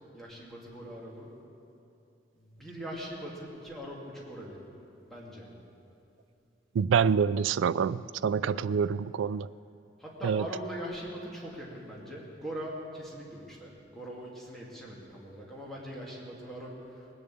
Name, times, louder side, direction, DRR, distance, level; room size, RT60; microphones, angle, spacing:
voice 1, 0.1-1.3 2.3-4.7 5.0-5.5 8.4-8.6 10.0-17.1, equal, ahead, -5 dB, 2.5 m, -41 dB
voice 2, 6.7-9.5 10.2-10.4, right 6 dB, 90° right, 18 dB, 0.3 m, -26 dB
20.0 x 7.0 x 8.5 m, 2.8 s
head